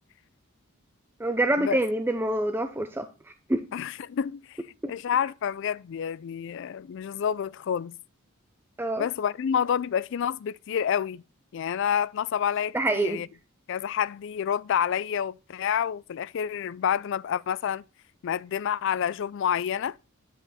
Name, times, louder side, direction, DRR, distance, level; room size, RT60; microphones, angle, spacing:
voice 1, 1.2-3.1 3.5-3.6 4.8-4.9 8.8-9.1 12.7-13.2, right 1 dB, 10° right, 0.5 m, -26 dB
voice 2, 3.7-4.6 4.9-7.9 9.0-11.2 11.5-13.3 13.7-17.8 18.2-20.0, left 8 dB, 60° left, 0.3 m, -28 dB
9.9 x 5.1 x 4.1 m
head